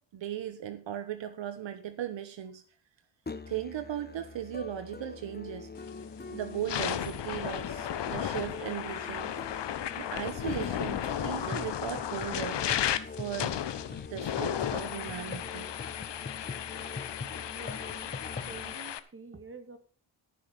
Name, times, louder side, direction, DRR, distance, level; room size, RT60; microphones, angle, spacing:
voice 1, 0.1-2.6 3.5-5.7 6.3-9.3 10.0-12.6 13.2-13.5 14.1-15.7, right 10 dB, 65° right, 10 dB, 1.2 m, -37 dB
Musical instrument, 3.3-18.8, left 4 dB, 20° left, 1.1 m, -43 dB
sound 1, 5.8-6.1 6.5-19.0, left 10 dB, 60° left, 1.1 m, -34 dB
Laughter / Crowd, 9.7-15.2 15.7-15.8 16.6-16.9, left 8 dB, 80° left, 3.3 m, -57 dB
voice 2, 17.5-18.2 18.5-19.8, right 4 dB, 25° right, 8 dB, 2.2 m, -47 dB
14.0 x 6.5 x 5.5 m, 0.41 s
cardioid pair, 70°, 47 cm